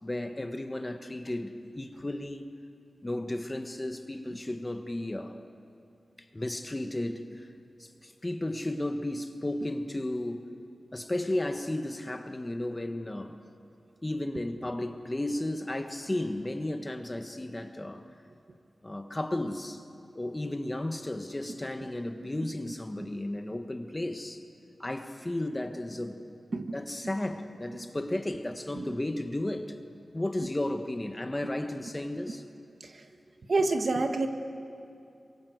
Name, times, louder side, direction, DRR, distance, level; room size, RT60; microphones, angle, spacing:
voice 1, 0.0-2.4 3.0-5.4 6.2-7.5 7.8-10.5 10.9-13.4 14.0-18.0 18.8-19.8 20.1-24.4 24.8-26.2 26.7-29.8 30.1-32.4, left 1 dB, 20° left, 7 dB, 1.3 m, -34 dB
voice 2, 33.5-34.3, right 3 dB, 50° right, 5 dB, 1.6 m, -28 dB
27.0 x 24.0 x 8.0 m, 2.5 s
wide cardioid pair, 135°, 0 cm